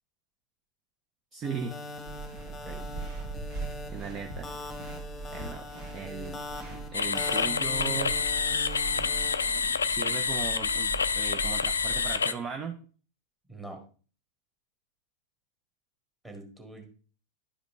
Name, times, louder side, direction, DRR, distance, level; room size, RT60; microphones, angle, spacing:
voice 1, 1.3-1.8 3.5-3.6 3.9-4.5 5.3-5.7 5.9-6.4 6.9-8.2 9.9-12.8, right 6 dB, 25° right, 6 dB, 0.6 m, -37 dB
sound 1, 1.4-9.6, left 2 dB, 15° left, 1.1 m, -42 dB
sound 2, 2.1-12.2, right 3 dB, 50° right, 1.9 m, -41 dB
voice 2, 2.4-2.8 13.5-13.8 16.2-16.8, right 2 dB, 10° right, 1 dB, 1.8 m, -44 dB
sound 3, 6.9-12.3, left 5 dB, 70° left, 0.3 m, -28 dB
11.0 x 5.0 x 3.1 m, 0.40 s
figure-of-eight pair, 90°, 0 cm